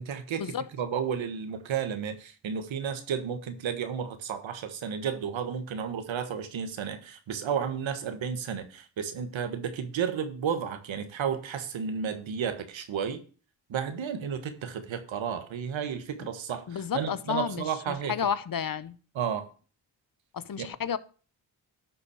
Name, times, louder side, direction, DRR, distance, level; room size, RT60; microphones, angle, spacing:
voice 1, 0.0-13.2 13.7-18.1 19.1-19.5 20.6-20.7, right 7 dB, 75° right, 1.5 m, -32 dB
voice 2, 16.7-19.0 20.3-21.0, left 8 dB, 45° left, 0.8 m, -31 dB
11.5 x 4.0 x 7.0 m
supercardioid pair, 50°, 46 cm